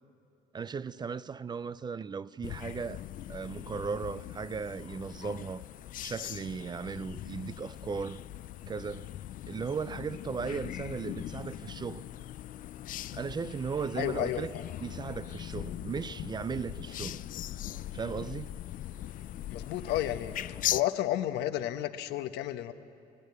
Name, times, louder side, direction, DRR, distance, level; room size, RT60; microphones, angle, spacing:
voice 1, 0.5-3.0 3.3-5.6 6.0-8.2 8.7-9.1 9.5-12.0 13.1-14.5 14.8-17.2 17.9-18.6, right 5 dB, 25° right, 0.4 m, -36 dB
sound 1, 2.4-20.8, left 13 dB, 55° left, 0.4 m, -40 dB
voice 2, 14.0-14.6 19.5-20.3 20.7-22.7, left 13 dB, 80° left, 1.0 m, -32 dB
22.5 x 16.5 x 9.5 m
cardioid pair, 110°, 17 cm